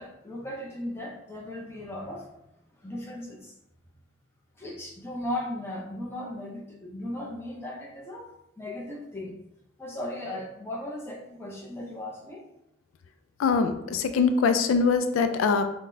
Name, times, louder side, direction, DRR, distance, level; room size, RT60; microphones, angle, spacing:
voice 1, 0.0-2.3 2.8-3.5 4.6-8.3 8.6-9.4 9.8-12.4, left 1 dB, 10° left, -2 dB, 0.6 m, -37 dB
voice 2, 13.4-15.7, left 5 dB, 85° left, 8 dB, 0.3 m, -23 dB
5.7 x 2.2 x 2.6 m, 0.84 s
head